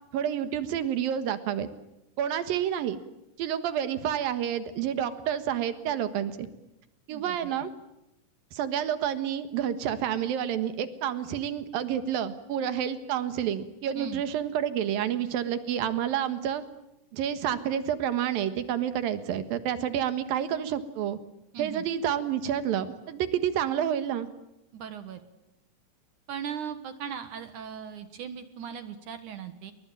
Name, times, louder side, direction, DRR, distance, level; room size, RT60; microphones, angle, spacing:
voice 1, 0.1-1.7 2.2-3.0 3.4-6.5 7.1-7.7 8.5-16.6 17.1-21.2 21.6-24.3, right 9 dB, 90° right, 11 dB, 3.3 m, -29 dB
voice 2, 7.1-7.5 14.0-14.2 21.5-21.9 24.7-25.2 26.3-29.7, right 8 dB, 65° right, 10 dB, 2.8 m, -38 dB
29.0 x 22.0 x 8.9 m, 0.90 s
omnidirectional pair, 4.0 m